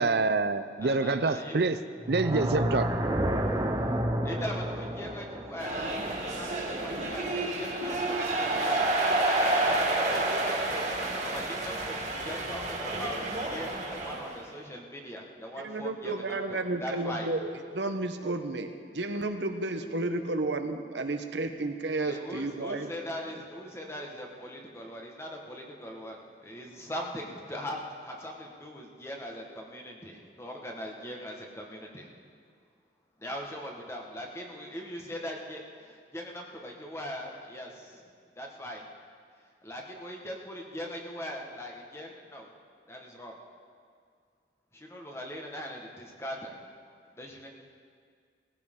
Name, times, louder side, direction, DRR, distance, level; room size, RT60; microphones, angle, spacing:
voice 1, 0.0-1.8 2.1-2.9, right 3 dB, 60° right, 12 dB, 0.6 m, -26 dB
voice 2, 0.8-1.6 3.3-4.0 4.2-8.9 9.3-16.4 16.8-17.3 22.0-32.1 33.2-38.0 38.4-38.9 39.6-42.5 42.9-43.3 44.7-46.5 47.1-47.5, equal, 15° left, 0 dB, 1.5 m, -40 dB
sound 1, 2.0-7.1, right 1 dB, 20° right, 0.9 m, -31 dB
sound 2, 5.6-14.4, right 2 dB, 40° right, 2.4 m, -29 dB
voice 3, 15.6-22.9, right 2 dB, 75° right, 7 dB, 1.0 m, -32 dB
19.5 x 15.0 x 3.8 m, 2.1 s
head